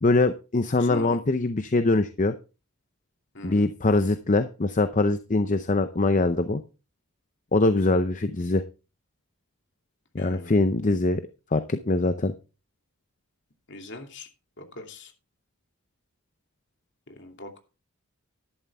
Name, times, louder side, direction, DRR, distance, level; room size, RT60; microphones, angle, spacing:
voice 1, 0.0-2.3 3.4-6.6 7.5-8.6 10.1-11.2 11.5-12.3, left 2 dB, 35° left, 10 dB, 0.6 m, -23 dB
voice 2, 0.8-1.2 3.3-3.7 10.2-10.6 13.7-14.3 14.6-15.1 17.2-17.6, left 2 dB, 55° left, 4 dB, 2.7 m, -39 dB
12.5 x 11.0 x 3.5 m, 0.32 s
head